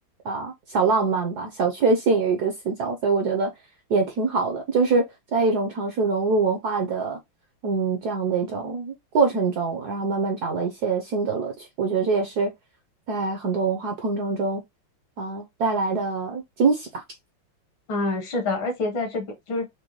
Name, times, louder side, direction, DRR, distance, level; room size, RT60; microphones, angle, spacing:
voice 1, 0.2-3.5 3.9-5.0 5.3-7.2 7.6-12.5 13.1-14.6 15.2-17.0, right 4 dB, 65° right, 1.0 m, -24 dB
voice 2, 17.9-19.7, left 2 dB, 70° left, 1.9 m, -27 dB
5.1 x 2.2 x 3.0 m
omnidirectional pair, 2.3 m